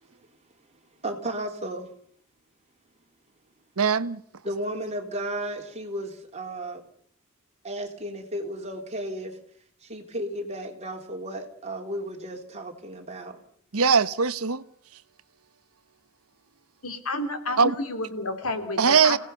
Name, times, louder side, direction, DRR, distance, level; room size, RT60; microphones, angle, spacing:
voice 1, 0.7-1.9 4.4-6.8 7.6-9.4 9.8-13.4, right 1 dB, 30° right, 3.3 m, -34 dB
voice 2, 3.8-4.2 13.7-14.6 17.6-17.7 18.8-19.2, right 5 dB, 90° right, 0.9 m, -21 dB
voice 3, 16.8-19.2, left 2 dB, 80° left, 3.5 m, -30 dB
29.0 x 17.5 x 5.7 m
head